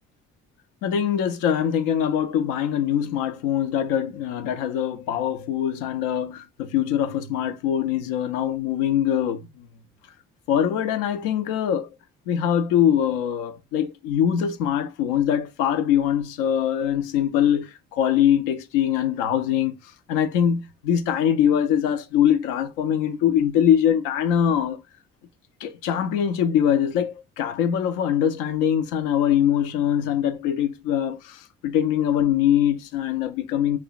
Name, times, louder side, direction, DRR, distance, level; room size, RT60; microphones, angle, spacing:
voice 1, 0.8-9.7 10.5-11.9 12.3-19.8 20.1-24.8 25.6-33.8, left 9 dB, 70° left, 0.5 m, -23 dB
3.0 x 2.1 x 2.3 m
hypercardioid pair, 45°, 34 cm